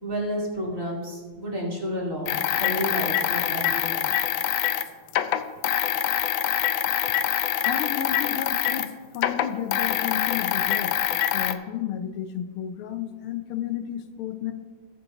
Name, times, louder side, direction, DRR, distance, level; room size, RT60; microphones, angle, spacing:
voice 1, 0.0-4.0, equal, 40° right, -3 dB, 2.6 m, -31 dB
sound 1, 2.3-8.9 9.1-11.5, left 11 dB, 75° left, 1.2 m, -25 dB
voice 2, 7.6-11.0 11.3-14.5, left 9 dB, 90° left, 9 dB, 1.7 m, -32 dB
19.5 x 7.5 x 3.0 m, 1.5 s
omnidirectional pair, 2.3 m